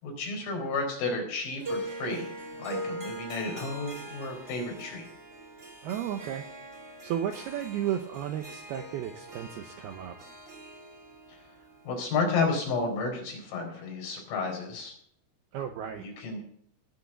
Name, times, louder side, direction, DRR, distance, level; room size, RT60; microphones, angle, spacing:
voice 1, 0.0-2.3 2.6-5.0 11.8-14.9 16.0-16.4, left 3 dB, 75° left, 1 dB, 6.8 m, -32 dB
Harp, 1.6-12.9, right 1 dB, 25° right, 1.5 m, -42 dB
voice 2, 5.8-6.4 7.0-10.2 15.5-16.1, right 10 dB, 80° right, 6 dB, 2.3 m, -33 dB
19.0 x 6.4 x 8.2 m, 0.65 s
omnidirectional pair, 5.6 m